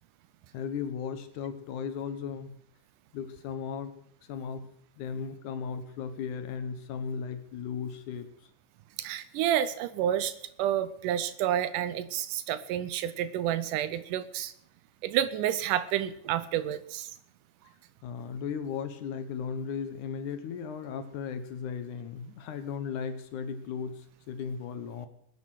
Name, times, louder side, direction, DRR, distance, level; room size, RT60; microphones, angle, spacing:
voice 1, 0.5-2.6 3.1-3.9 4.3-4.7 5.0-8.3 18.0-25.1, left 6 dB, 75° left, 9 dB, 2.6 m, -36 dB
voice 2, 9.0-10.3 10.6-14.5 15.0-17.1, right 11 dB, 85° right, 13 dB, 2.2 m, -29 dB
20.5 x 7.8 x 6.4 m, 0.69 s
omnidirectional pair, 3.7 m